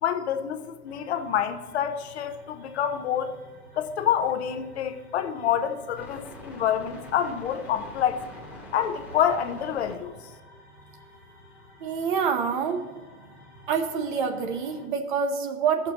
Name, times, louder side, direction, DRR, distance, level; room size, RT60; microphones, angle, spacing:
voice 1, 0.0-3.4 3.8-8.2 8.7-10.1, left 9 dB, 45° left, 0.7 m, -27 dB
sound 1, 0.9-14.9, left 1 dB, 5° right, 1.2 m, -47 dB
voice 2, 11.8-12.8 13.7-15.9, right 6 dB, 35° right, 0.7 m, -26 dB
15.5 x 6.7 x 2.9 m
hypercardioid pair, 140°, 45 cm